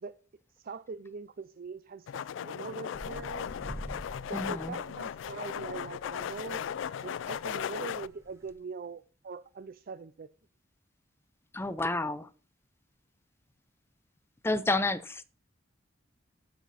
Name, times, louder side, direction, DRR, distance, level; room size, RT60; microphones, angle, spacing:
voice 1, 0.5-3.5 4.2-6.6 6.9-10.3, right 4 dB, 50° right, 0.5 m, -42 dB
sound 1, 2.1-8.1, left 8 dB, 80° left, 0.3 m, -37 dB
sound 2, 2.9-8.5, equal, 15° right, 1.6 m, -47 dB
voice 2, 4.3-4.8 11.5-12.3 14.4-15.2, left 2 dB, 15° left, 0.6 m, -30 dB
12.0 x 5.9 x 4.1 m
head